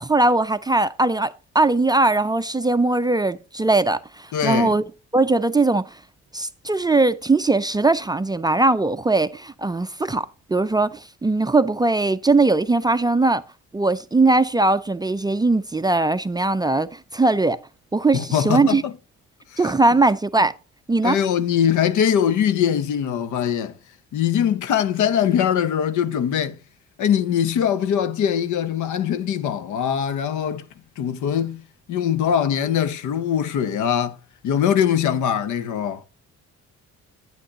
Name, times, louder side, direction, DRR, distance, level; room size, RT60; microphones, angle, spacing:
voice 1, 0.0-4.8 5.1-6.0 6.3-13.4 13.7-17.6 17.9-18.8 19.6-20.5 20.9-21.2, right 2 dB, 15° right, 0.4 m, -20 dB
voice 2, 4.3-4.7 18.1-18.9 19.5-19.6 21.0-23.7 24.1-26.6 27.0-30.6 31.0-34.2 34.4-36.0, left 9 dB, 75° left, 0.8 m, -22 dB
9.3 x 7.6 x 2.8 m
cardioid pair, 90°, 30 cm